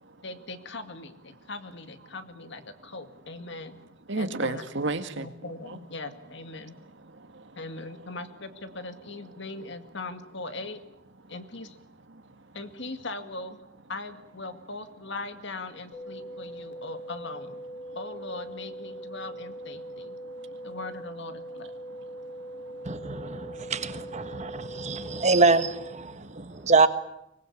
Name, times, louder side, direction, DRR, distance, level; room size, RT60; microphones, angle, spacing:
voice 1, 0.2-3.8 4.2-4.6 5.2-6.8 7.6-10.8 11.3-11.8 12.5-13.6 13.9-17.6 17.9-20.2 20.6-21.7, left 3 dB, 65° left, 2.2 m, -40 dB
voice 2, 4.1-5.8 6.6-8.1 9.2-9.3 11.2-11.3 12.1-12.6 16.2-16.8 17.8-18.0 19.8-20.8 21.6-25.3 26.0-26.7, right 2 dB, 65° right, 2.0 m, -39 dB
sound 1, 15.9-25.9, right 1 dB, 45° left, 4.3 m, -41 dB
voice 3, 22.8-26.9, right 3 dB, 35° right, 1.5 m, -25 dB
24.5 x 20.0 x 8.5 m
head